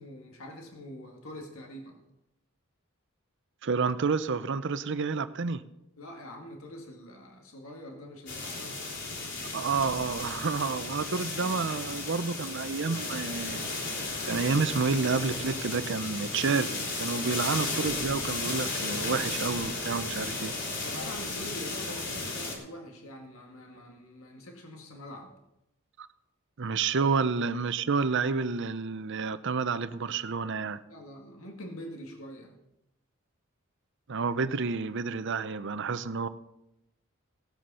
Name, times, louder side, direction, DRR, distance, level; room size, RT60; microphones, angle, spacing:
voice 1, 0.0-2.0 6.0-9.0 17.1-17.4 20.2-20.4 20.8-25.3 27.0-27.2 30.9-32.6, left 1 dB, 75° left, 2 dB, 2.0 m, -44 dB
voice 2, 3.6-5.7 9.5-13.6 14.3-20.5 26.0-26.1 26.6-30.8 34.1-36.3, right 4 dB, 55° right, 13 dB, 0.6 m, -29 dB
sound 1, 8.3-22.5, left 3 dB, 55° left, 3.6 m, -34 dB
17.0 x 7.8 x 5.6 m, 0.88 s
head